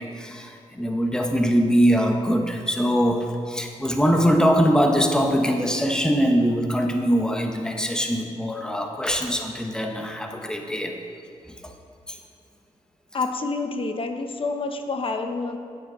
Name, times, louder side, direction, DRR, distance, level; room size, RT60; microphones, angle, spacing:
voice 1, 0.0-11.0 11.6-11.7 12.1-12.2, equal, 5° left, 3 dB, 1.1 m, -22 dB
voice 2, 13.1-15.6, left 3 dB, 45° left, 6 dB, 0.8 m, -28 dB
9.4 x 9.4 x 3.9 m, 2.4 s
cardioid pair, 75°, 12 cm